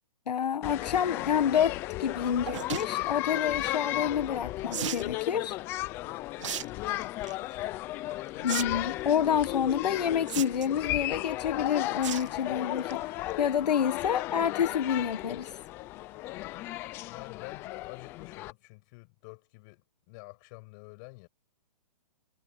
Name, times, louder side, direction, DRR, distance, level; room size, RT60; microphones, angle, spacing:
voice 1, 0.3-5.6 8.4-15.5, left 8 dB, 75° left, 1.4 m, -28 dB
sound 1, 0.6-18.5, left 17 dB, 10° left, 0.5 m, -35 dB
sound 2, 2.5-2.9 4.7-5.1 6.4-6.6 7.0-7.3 8.5-8.6 8.9-9.0 10.3-10.8 12.0-12.3 12.7-12.9 13.3-13.4 13.6-13.7, right 11 dB, 45° right, 1.6 m, -34 dB
voice 2, 6.6-7.0 17.0-21.3, left 29 dB, 25° left, 7.7 m, -48 dB
hypercardioid pair, 165°, 21 cm